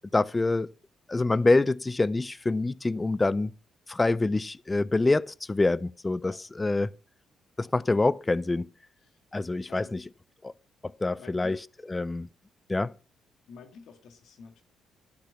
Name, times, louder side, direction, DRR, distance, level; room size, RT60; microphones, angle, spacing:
voice 1, 0.1-0.7 1.1-3.5 3.9-7.0 7.6-8.7 9.3-10.0 10.4-10.5 10.8-11.6 11.9-12.3 12.7-12.9, left 2 dB, 20° left, 0.5 m, -26 dB
voice 2, 11.2-11.6 13.5-14.6, left 5 dB, 70° left, 1.9 m, -49 dB
12.0 x 6.1 x 5.8 m
cardioid pair, 90°, 0 cm